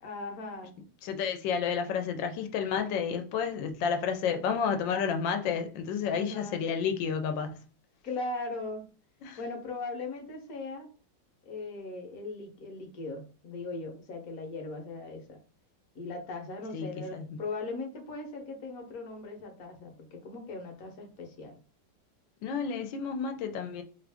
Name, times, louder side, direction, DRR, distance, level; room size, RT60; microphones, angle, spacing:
voice 1, 0.0-0.7 6.0-6.7 8.0-8.9 9.4-10.9 11.4-15.4 15.9-21.5, left 3 dB, 60° left, 1.2 m, -39 dB
voice 2, 1.0-7.6 9.2-9.4 16.7-17.3 22.4-23.8, left 6 dB, 85° left, 1.4 m, -31 dB
3.2 x 2.5 x 3.4 m
omnidirectional pair, 2.0 m